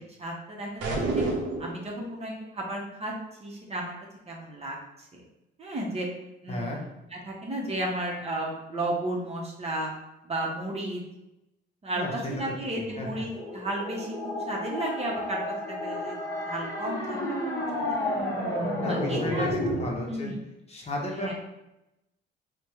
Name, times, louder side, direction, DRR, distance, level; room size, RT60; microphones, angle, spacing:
voice 1, 0.2-1.2 1.6-3.1 3.4-4.0 4.3-5.2 5.6-6.1 6.4-9.9 10.2-11.0 11.8-17.2 17.7-18.1 18.9-19.8 20.1-20.4 21.1-21.3, right 1 dB, 30° right, -2 dB, 0.7 m, -33 dB
sound 1, 0.8-1.8, right 2 dB, 75° right, 0.6 m, -28 dB
voice 2, 6.5-6.8 11.9-12.3 13.0-13.2 18.8-20.3 20.7-21.3, left 1 dB, 30° left, -1 dB, 0.7 m, -33 dB
sound 2, 13.3-19.9, equal, 15° left, 1.1 m, -31 dB
3.3 x 2.1 x 2.9 m, 0.93 s
cardioid pair, 90°, 20 cm